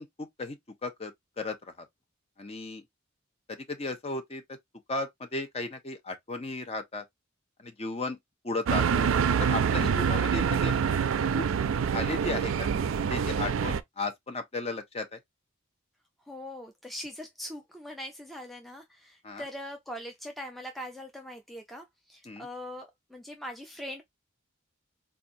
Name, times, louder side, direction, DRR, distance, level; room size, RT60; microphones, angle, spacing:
voice 1, 0.0-1.9 2.4-2.8 3.5-4.4 4.9-7.0 7.6-8.2 8.4-9.1 9.4-11.1 11.3-11.5 11.9-12.7 13.1-15.2 19.2-19.5 22.2-22.5, left 2 dB, 30° left, 0.7 m, -35 dB
sound 1, 8.7-13.8, right 7 dB, 80° right, 0.4 m, -26 dB
voice 2, 16.3-24.0, left 1 dB, ahead, 0.4 m, -41 dB
4.1 x 2.4 x 2.5 m
head